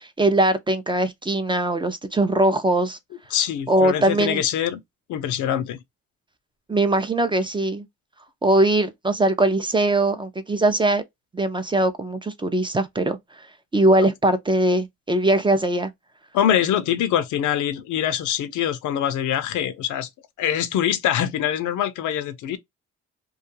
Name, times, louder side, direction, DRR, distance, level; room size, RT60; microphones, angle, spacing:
voice 1, 0.0-3.0 3.7-4.4 6.7-7.9 8.4-11.0 11.3-13.2 13.7-15.9, right 1 dB, 15° right, 0.4 m, -21 dB
voice 2, 3.3-4.8 5.1-5.8 14.0-14.1 16.3-20.1 20.4-22.6, left 10 dB, 75° left, 0.6 m, -24 dB
2.3 x 2.3 x 2.7 m
cardioid pair, 90°, 30 cm